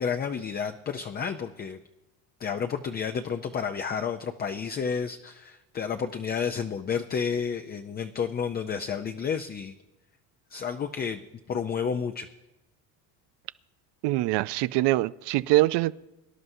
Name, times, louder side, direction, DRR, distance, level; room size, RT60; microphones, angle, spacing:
voice 1, 0.0-1.8 2.4-9.7 10.5-11.2 11.5-12.3, left 6 dB, 25° left, 0.4 m, -31 dB
voice 2, 14.0-15.9, right 18 dB, 65° right, 0.5 m, -23 dB
24.0 x 11.0 x 2.7 m
cardioid pair, 115°, 45 cm